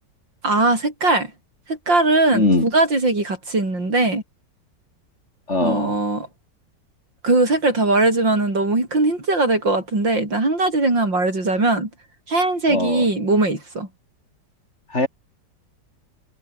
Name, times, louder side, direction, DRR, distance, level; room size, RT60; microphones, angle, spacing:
voice 1, 0.4-1.3 1.7-4.2 5.6-6.3 7.2-11.9 12.3-13.9, right 2 dB, 85° right, 7.7 m, -20 dB
voice 2, 2.3-2.7 5.5-6.0 12.7-13.1 14.9-15.1, left 2 dB, 35° left, 4.0 m, -21 dB
omnidirectional pair, 2.0 m